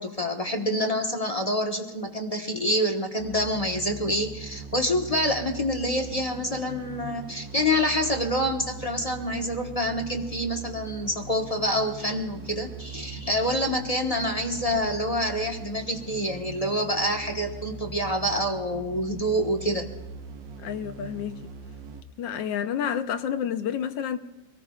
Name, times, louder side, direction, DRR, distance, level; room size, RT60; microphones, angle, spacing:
voice 1, 0.0-19.9 22.5-22.7, equal, 25° left, 1.1 m, -27 dB
sound 1, 3.2-22.0, right 5 dB, 90° right, 1.8 m, -41 dB
voice 2, 20.6-21.5 22.2-24.2, left 8 dB, 80° left, 1.5 m, -29 dB
25.5 x 18.5 x 2.4 m
omnidirectional pair, 2.0 m